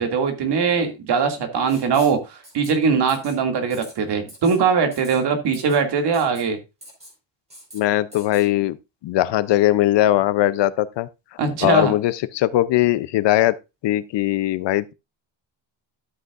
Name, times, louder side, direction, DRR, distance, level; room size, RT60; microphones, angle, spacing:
voice 1, 0.0-6.6 11.4-11.9, right 5 dB, 55° right, 2.4 m, -21 dB
Writing, 1.7-2.2 2.4-2.7 3.1-3.4 3.7-3.9 4.3-4.6 4.9-5.2 5.5-5.8 6.1-6.4 6.8-7.1 7.5-7.8 8.1-8.4, equal, 15° right, 4.3 m, -43 dB
voice 2, 7.7-8.8 9.0-11.1 11.6-13.6 13.8-14.9, left 14 dB, 60° left, 0.6 m, -20 dB
12.5 x 7.8 x 2.5 m
cardioid pair, 165°, 49 cm